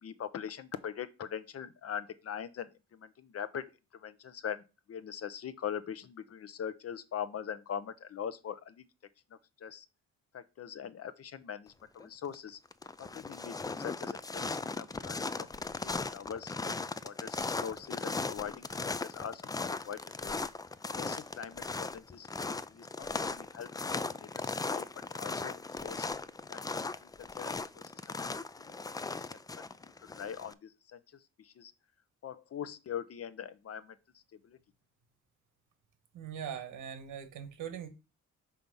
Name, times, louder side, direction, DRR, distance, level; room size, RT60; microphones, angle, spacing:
voice 1, 0.0-3.6 3.9-8.8 9.6-9.9 10.3-12.6 13.0-15.5 15.8-16.7 17.0-20.4 21.0-23.7 24.0-24.9 25.2-26.1 26.5-27.9 28.2-28.3 28.6-29.3 29.6-29.7 30.0-31.0 31.4-31.7 32.2-34.0 34.4-34.6, left 8 dB, 50° left, 0.7 m, -42 dB
sound 1, 12.0-12.3 12.7-30.5, left 3 dB, 15° left, 0.3 m, -37 dB
voice 2, 36.1-37.9, right 8 dB, 75° right, 1.5 m, -41 dB
5.7 x 3.5 x 5.4 m
cardioid pair, 85°, 31 cm